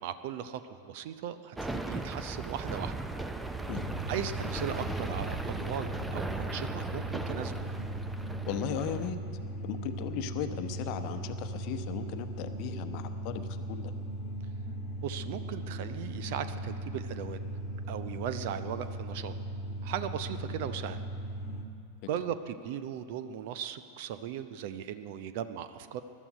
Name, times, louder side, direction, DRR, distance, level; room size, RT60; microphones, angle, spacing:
voice 1, 0.0-2.9 4.1-7.7 15.0-17.4 17.9-19.3 19.8-21.0 22.1-26.0, right 9 dB, 50° right, 12 dB, 0.7 m, -37 dB
sound 1, 1.6-9.1, right 2 dB, 5° right, 0.7 m, -37 dB
sound 2, 3.7-21.7, right 1 dB, 25° left, 1.4 m, -38 dB
voice 2, 8.5-9.2 9.6-13.9, left 8 dB, 45° left, 9 dB, 0.9 m, -36 dB
21.0 x 12.0 x 5.2 m, 2.5 s
figure-of-eight pair, 90°, 0 cm